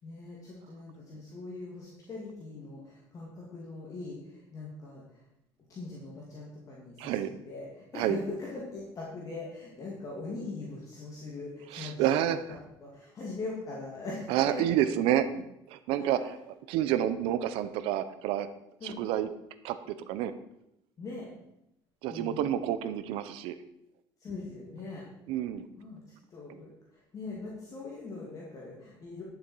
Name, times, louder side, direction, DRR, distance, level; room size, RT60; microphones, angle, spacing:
voice 1, 0.0-5.2 5.7-12.1 12.8-14.6 16.0-16.3 18.8-19.0 21.0-21.3 22.1-22.5 24.2-25.1 25.8-29.2, left 3 dB, 40° left, -4 dB, 2.7 m, -41 dB
voice 2, 7.0-7.3 7.9-8.2 11.7-12.4 14.3-18.5 18.8-19.3 19.6-20.3 22.0-23.6 25.3-25.7 26.5-26.6, right 11 dB, 80° right, 12 dB, 0.8 m, -29 dB
11.0 x 7.1 x 4.7 m, 0.84 s
cardioid pair, 115°, 9 cm